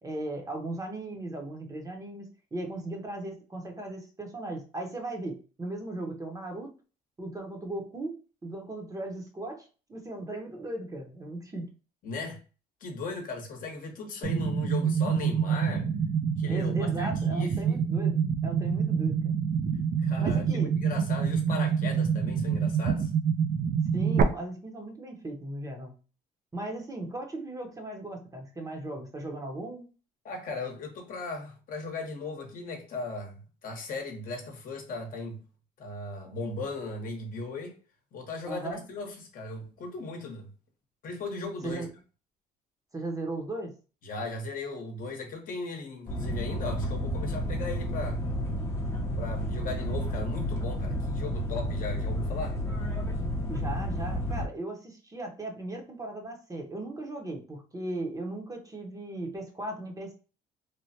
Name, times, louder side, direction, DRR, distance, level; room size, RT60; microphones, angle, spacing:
voice 1, 0.0-6.7 7.2-8.1 8.4-11.7 16.5-19.4 20.2-20.7 23.9-25.9 26.5-29.9 38.5-38.8 41.6-41.9 42.9-43.7 53.4-60.1, right 2 dB, 20° right, 0.7 m, -37 dB
voice 2, 12.0-12.4 12.8-15.9 16.4-17.8 20.0-23.1 30.2-35.4 35.8-37.7 38.1-40.5 41.0-41.8 44.0-48.3 49.2-52.6, left 3 dB, 55° left, 0.9 m, -37 dB
sound 1, 14.2-24.2, right 7 dB, 50° right, 0.4 m, -27 dB
sound 2, 46.1-54.5, equal, 15° left, 0.7 m, -31 dB
3.2 x 2.1 x 2.7 m
cardioid pair, 110°, 17 cm